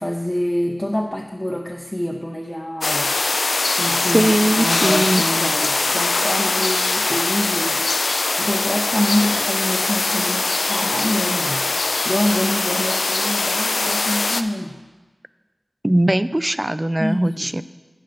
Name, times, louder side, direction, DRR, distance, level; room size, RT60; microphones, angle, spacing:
voice 1, 0.0-14.7 17.0-17.5, left 1 dB, 15° left, 0 dB, 0.6 m, -26 dB
sound 1, 2.8-14.4, left 3 dB, 90° left, 0.3 m, -21 dB
voice 2, 4.1-5.2 15.8-17.6, right 1 dB, 25° right, 15 dB, 0.3 m, -19 dB
9.0 x 5.5 x 5.2 m, 1.3 s
wide cardioid pair, 50°, 0 cm